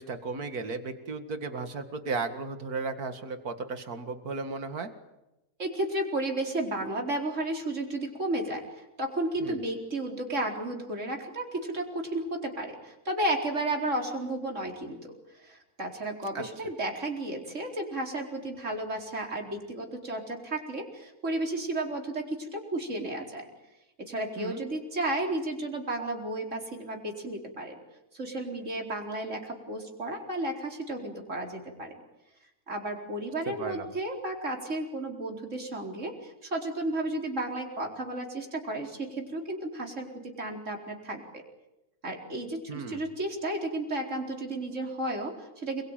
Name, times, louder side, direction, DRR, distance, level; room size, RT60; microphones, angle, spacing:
voice 1, 0.0-4.9 9.4-9.6 16.3-16.4 24.4-24.6 33.5-33.9 42.7-43.0, right 4 dB, 80° right, 8 dB, 2.5 m, -35 dB
voice 2, 5.6-8.6 9.0-15.1 15.4-23.4 24.0-27.8 28.1-31.9 32.7-41.2 42.0-45.8, right 1 dB, 55° right, 2 dB, 4.6 m, -33 dB
28.0 x 22.5 x 9.1 m, 0.96 s
omnidirectional pair, 1.6 m